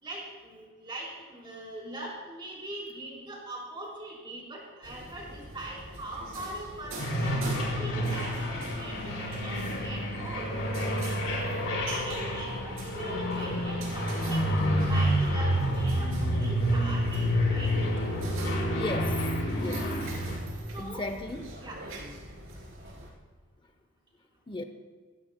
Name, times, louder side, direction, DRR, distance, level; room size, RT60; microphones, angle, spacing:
voice 1, 0.0-10.5 12.0-14.5 14.8-17.8 20.7-21.0 21.6-21.8, right 1 dB, 20° right, -3 dB, 3.9 m, -41 dB
sound 1, 4.8-23.1, right 1 dB, 65° right, 3.7 m, -44 dB
sound 2, 7.0-20.4, equal, 60° left, 3.6 m, -29 dB
voice 2, 18.7-19.4 19.6-19.9 20.8-21.6 24.5-24.6, left 2 dB, 20° left, 7 dB, 0.6 m, -36 dB
21.5 x 15.5 x 2.2 m, 1.5 s
head